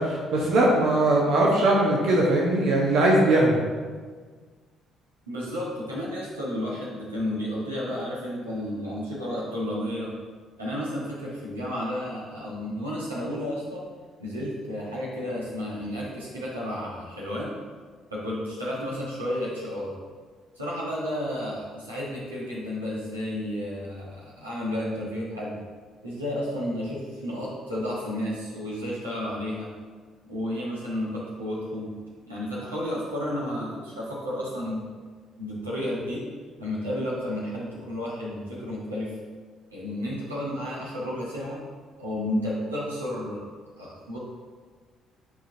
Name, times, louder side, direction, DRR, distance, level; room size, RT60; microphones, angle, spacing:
voice 1, 0.0-3.6, right 1 dB, 60° right, -3 dB, 1.0 m, -20 dB
voice 2, 5.3-10.1 10.6-13.8 14.2-17.5 18.1-19.9 20.5-25.6 26.0-29.7 30.2-31.9 32.2-34.9 35.4-36.2 36.6-39.1 39.7-41.6 42.0-43.4 43.8-44.2, left 1 dB, 90° right, -7 dB, 1.4 m, -32 dB
9.7 x 4.4 x 2.8 m, 1.5 s
figure-of-eight pair, 45°, 0 cm